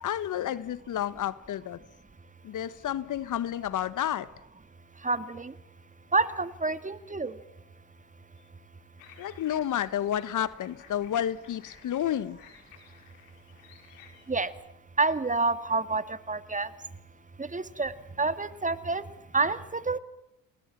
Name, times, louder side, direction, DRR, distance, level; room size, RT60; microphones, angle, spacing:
voice 1, 0.0-1.8 2.4-4.3 9.2-12.4, left 10 dB, 50° left, 1.3 m, -30 dB
voice 2, 5.0-5.5 6.1-7.4 14.3-14.5 15.0-16.7 17.4-17.9 18.2-19.1 19.3-20.0, right 3 dB, 20° right, 2.0 m, -28 dB
sound 1, 9.0-14.5, left 8 dB, 85° left, 5.4 m, -55 dB
29.0 x 20.5 x 7.5 m
hypercardioid pair, 70°, 39 cm